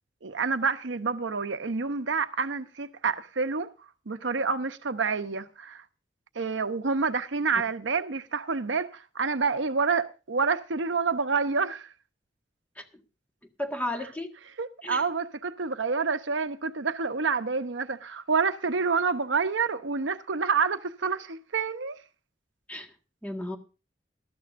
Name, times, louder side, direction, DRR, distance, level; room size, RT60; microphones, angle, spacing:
voice 1, 0.2-3.7 4.1-5.8 6.3-11.9 14.6-22.0, right 5 dB, 85° right, 0.9 m, -28 dB
voice 2, 13.6-14.3 14.8-15.0 22.7-22.9 23.2-23.6, left 1 dB, 10° left, 1.7 m, -34 dB
19.0 x 13.0 x 2.6 m
head